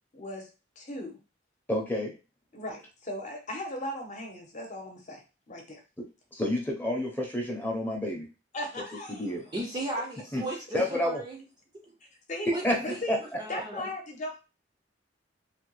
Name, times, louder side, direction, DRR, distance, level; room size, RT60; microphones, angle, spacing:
voice 1, 0.1-0.5 0.8-1.2 2.5-5.2 5.5-5.8 8.5-9.4 12.3-12.5 12.8-13.2 13.5-14.4, left 1 dB, 40° left, 2 dB, 0.8 m, -37 dB
voice 2, 1.7-2.1 6.4-8.3 9.1-9.4 10.3-10.4 10.7-11.2 12.6-13.2, left 1 dB, 10° left, 0 dB, 0.8 m, -29 dB
voice 3, 9.5-11.4 11.8-11.9 12.5-12.7 13.4-13.9, right 2 dB, 25° right, -2 dB, 0.5 m, -35 dB
3.2 x 2.2 x 3.1 m, 0.31 s
head